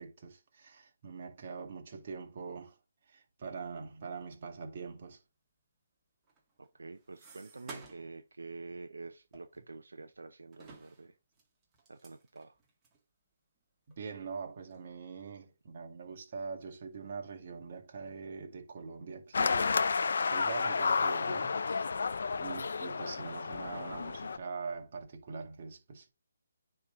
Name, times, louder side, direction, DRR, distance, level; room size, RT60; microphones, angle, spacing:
voice 1, 0.0-2.8 3.1-5.2 14.0-19.8 20.2-21.8 22.4-26.1, right 5 dB, 45° right, 1.9 m, -43 dB
sound 1, 6.2-8.2 8.5-8.7 9.3-10.2 10.5-13.0 13.6-13.7 13.9-14.0 14.7-14.9 15.4-16.0 16.4-17.1, right 3 dB, 20° right, 2.1 m, -54 dB
voice 2, 6.6-11.1 11.9-12.6 22.5-22.7, right 3 dB, 85° right, 0.7 m, -47 dB
sound 2, 19.3-24.4, left 5 dB, 70° left, 0.5 m, -31 dB
9.6 x 3.5 x 3.9 m
hypercardioid pair, 155°, 0 cm